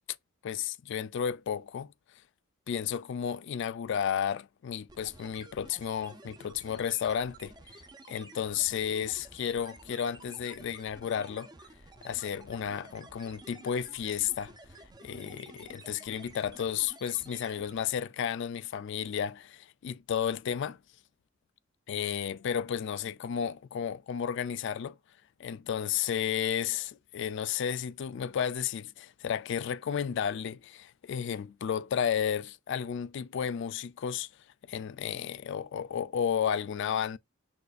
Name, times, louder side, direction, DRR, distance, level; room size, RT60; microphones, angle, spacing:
voice 1, 0.4-1.9 2.7-7.5 8.1-11.5 12.0-14.5 15.0-20.8 21.9-25.0 25.4-34.3 34.7-37.2, left 8 dB, 60° left, 0.3 m, -32 dB
sound 1, 4.9-18.0, right 2 dB, 20° right, 0.6 m, -52 dB
6.4 x 2.6 x 2.4 m
head